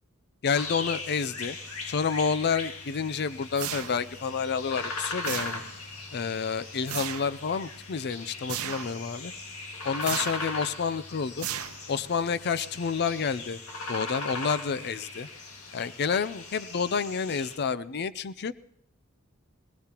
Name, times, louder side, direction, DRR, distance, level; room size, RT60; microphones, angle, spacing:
voice 1, 0.4-1.6 1.9-5.6 6.1-9.3 9.8-11.5 11.9-13.6 13.9-15.3 15.7-18.5, left 6 dB, 50° left, 16 dB, 0.5 m, -29 dB
sound 1, 0.5-17.6, left 3 dB, 85° left, 1.9 m, -39 dB
sound 2, 3.6-4.2 5.2-5.9 6.9-7.4 8.5-9.0 10.0-10.5 11.4-12.1, right 10 dB, 85° right, 0.7 m, -35 dB
20.5 x 20.0 x 3.0 m, 0.72 s
head